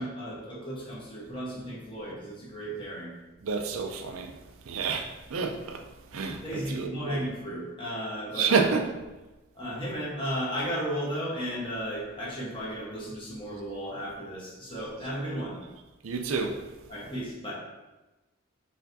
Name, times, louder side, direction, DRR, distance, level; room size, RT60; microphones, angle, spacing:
voice 1, 0.0-3.1 6.1-8.7 9.5-15.6 16.9-17.5, equal, 25° left, 1.2 m, -34 dB
voice 2, 3.4-4.3 4.7-5.8 6.1-7.2 8.4-8.8 16.0-16.6, right 5 dB, 75° right, 0.5 m, -29 dB
4.5 x 3.3 x 2.7 m
head